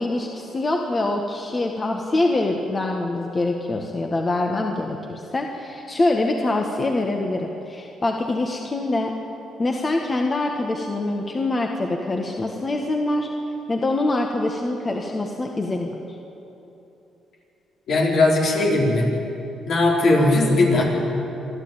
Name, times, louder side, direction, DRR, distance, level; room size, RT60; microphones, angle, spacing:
voice 1, 0.0-9.1 9.6-13.3 13.7-15.9, left 2 dB, 30° left, 2 dB, 1.7 m, -24 dB
voice 2, 17.9-19.1 19.7-20.8, left 2 dB, 65° left, -2 dB, 4.7 m, -18 dB
26.5 x 12.0 x 9.0 m, 3.0 s
cardioid pair, 90°, 0 cm